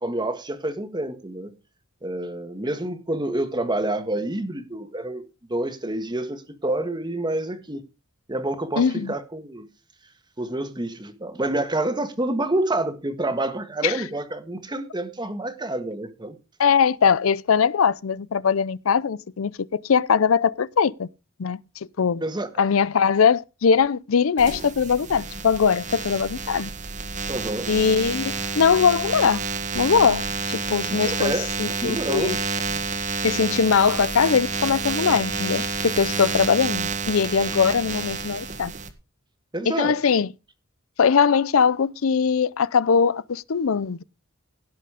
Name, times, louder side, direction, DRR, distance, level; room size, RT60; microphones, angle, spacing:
voice 1, 0.0-1.5 2.0-5.2 5.5-7.8 8.3-9.7 10.4-16.4 22.2-22.5 27.3-27.7 30.9-31.5 31.8-32.4 39.5-40.0, right 1 dB, 20° right, 1.6 m, -28 dB
voice 2, 8.8-9.1 13.8-13.9 16.6-21.1 21.4-21.6 22.0-22.2 22.6-26.7 27.7-29.4 29.7-31.3 31.6-32.4 33.2-38.7 39.7-40.3 41.0-44.0, left 6 dB, 80° left, 0.5 m, -21 dB
sound 1, 24.4-38.9, right 4 dB, 40° right, 1.6 m, -29 dB
16.5 x 6.7 x 4.9 m
head